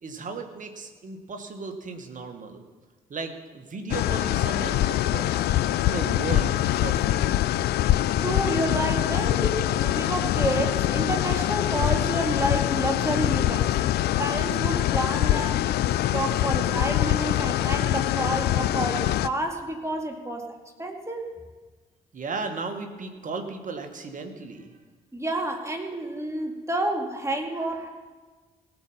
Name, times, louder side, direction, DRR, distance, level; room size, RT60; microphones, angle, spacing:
voice 1, 0.0-2.6 3.1-5.5 5.8-7.3 22.1-24.8, right 4 dB, 40° right, 5 dB, 1.8 m, -35 dB
sound 1, 3.9-19.3, left 13 dB, 55° left, 0.4 m, -24 dB
voice 2, 8.2-13.7 14.2-15.6 16.1-21.2 25.1-27.9, right 1 dB, 15° right, 2 dB, 2.3 m, -29 dB
18.0 x 7.2 x 5.7 m, 1.3 s
figure-of-eight pair, 40°, 20 cm